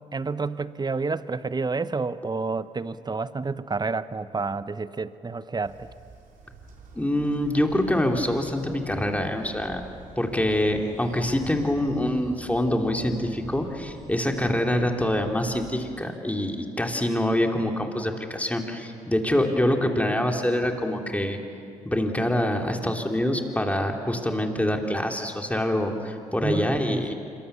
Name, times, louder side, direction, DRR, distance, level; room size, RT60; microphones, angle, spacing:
voice 1, 0.1-5.9 26.4-27.1, right 4 dB, 25° right, 15 dB, 1.0 m, -29 dB
Train, 5.6-15.6, right 3 dB, 60° right, 3.9 m, -47 dB
voice 2, 6.9-9.8 10.2-21.4 21.8-27.1, left 1 dB, 10° left, 3 dB, 3.4 m, -25 dB
26.0 x 23.0 x 7.1 m, 2.4 s
hypercardioid pair, 50°, 16 cm